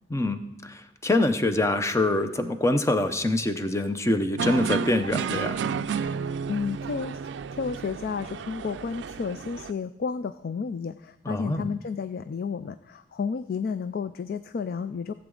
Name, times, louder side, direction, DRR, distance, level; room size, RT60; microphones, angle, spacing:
voice 1, 0.1-5.6 11.3-11.7, left 2 dB, 15° left, 8 dB, 0.6 m, -25 dB
sound 1, 4.4-9.7, right 6 dB, 75° right, 0.4 m, -31 dB
voice 2, 6.5-7.2 7.5-15.1, left 5 dB, 55° left, 12 dB, 0.3 m, -31 dB
15.5 x 8.1 x 3.8 m, 0.96 s
head